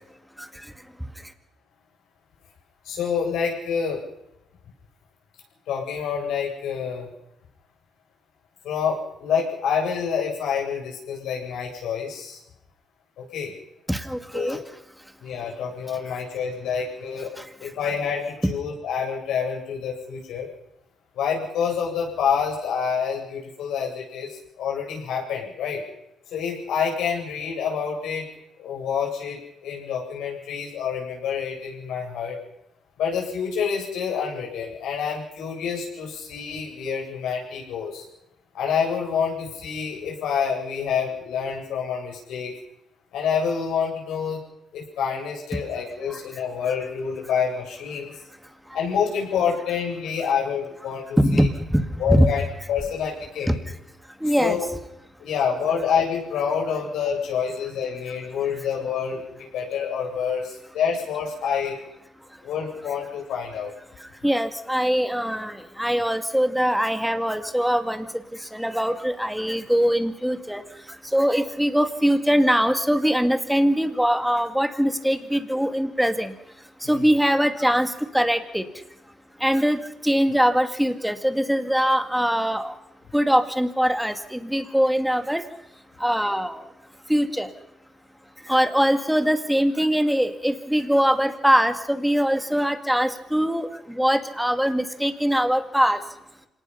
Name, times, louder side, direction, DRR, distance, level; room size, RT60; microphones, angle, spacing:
voice 1, 2.8-4.0 5.7-7.1 8.6-12.4 13.2-13.5 14.3-14.6 15.2-17.3 17.6-20.5 21.1-25.8 26.3-28.3 28.6-32.4 33.0-38.0 38.5-42.5 43.1-44.4 44.7-48.1 48.7-51.5 52.0-52.4 52.7-53.5 54.4-54.6 55.2-59.2 59.5-61.7 62.4-63.7 77.0-77.1, left 7 dB, 85° left, -2 dB, 8.0 m, -27 dB
voice 2, 13.9-14.6 51.2-52.3 54.2-54.6 64.2-68.1 68.5-70.6 71.1-76.3 76.9-78.6 79.4-82.7 83.1-85.4 86.0-86.6 87.1-87.5 88.5-93.7 94.0-96.0, equal, ahead, 8 dB, 2.1 m, -22 dB
26.0 x 19.0 x 5.9 m, 0.86 s
cardioid pair, 90°, 0 cm